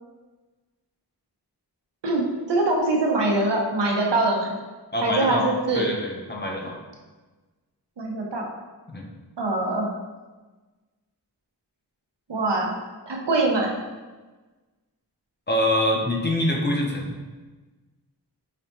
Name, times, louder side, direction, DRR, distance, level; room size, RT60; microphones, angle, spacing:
voice 1, 2.0-4.5 5.0-5.9 8.0-8.4 9.4-9.9 12.3-12.7 13.1-13.7, right 2 dB, 90° right, -1 dB, 0.7 m, -23 dB
voice 2, 4.9-5.5 5.8-6.8 8.9-9.1 15.5-17.2, left 1 dB, 25° left, -1 dB, 0.6 m, -25 dB
4.9 x 2.1 x 2.8 m, 1.3 s
wide cardioid pair, 45°, 41 cm